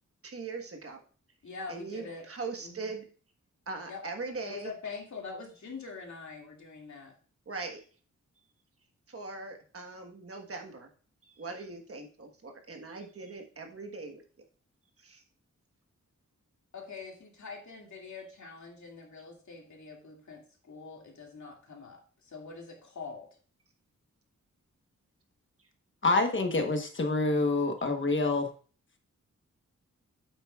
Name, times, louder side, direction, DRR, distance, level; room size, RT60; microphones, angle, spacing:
voice 1, 0.2-1.0 1.7-3.1 3.7-4.7 7.5-7.8 9.1-10.9 11.2-14.2 15.0-15.2, right 3 dB, 50° right, 4 dB, 1.3 m, -40 dB
voice 2, 1.4-2.2 2.6-2.9 3.9-4.0 4.4-7.1 16.7-23.3, left 4 dB, 70° left, 1 dB, 2.2 m, -44 dB
voice 3, 26.0-28.5, left 3 dB, 40° left, 5 dB, 1.1 m, -27 dB
8.7 x 8.1 x 2.4 m, 0.40 s
wide cardioid pair, 165°, 30 cm